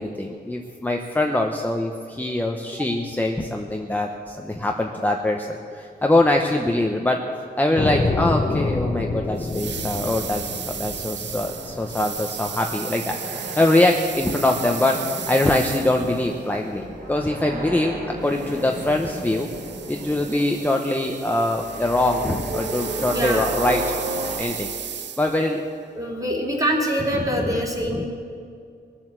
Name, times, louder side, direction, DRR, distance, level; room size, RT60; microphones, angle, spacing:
voice 1, 0.0-7.2 7.6-13.2 13.6-15.0 15.3-19.5 19.9-23.8 24.4-24.7 25.2-25.6 27.2-27.6 27.9-28.1, left 1 dB, 10° left, 2 dB, 0.9 m, -23 dB
sound 1, 7.8-12.6, left 3 dB, 30° left, 1.1 m, -27 dB
sound 2, 9.4-16.4 18.3-25.5, right 8 dB, 75° right, 0.7 m, -35 dB
sound 3, 11.2-24.4, right 1 dB, 55° right, 3.5 m, -34 dB
voice 2, 23.1-23.4 25.9-28.1, equal, 20° right, -2 dB, 3.1 m, -24 dB
21.0 x 7.8 x 7.5 m, 2.3 s
wide cardioid pair, 110°, 18 cm